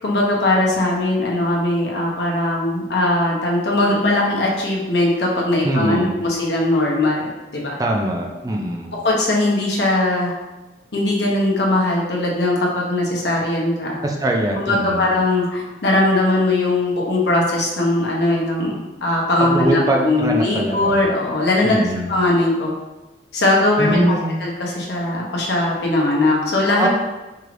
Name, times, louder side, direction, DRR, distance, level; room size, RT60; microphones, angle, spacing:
voice 1, 0.0-7.2 7.5-7.8 9.0-10.3 10.9-13.9 14.5-22.7 23.3-24.1 24.4-26.9, left 2 dB, 70° left, -2 dB, 0.9 m, -20 dB
voice 2, 5.6-6.2 7.8-8.9 14.0-15.1 19.4-21.0 21.6-22.1 23.8-24.4 26.8-26.9, right 1 dB, 20° right, 0 dB, 0.4 m, -22 dB
4.6 x 3.2 x 2.5 m, 1.1 s
head